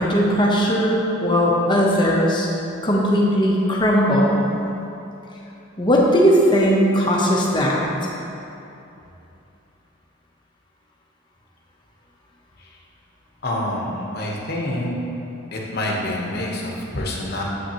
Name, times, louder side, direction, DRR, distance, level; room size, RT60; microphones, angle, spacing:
voice 1, 0.0-2.5 2.8-4.4 5.8-7.8, equal, 20° left, -3 dB, 0.8 m, -18 dB
voice 2, 13.4-14.9 15.5-17.4, left 1 dB, 45° left, -2 dB, 0.9 m, -27 dB
8.0 x 5.7 x 2.9 m, 2.9 s
head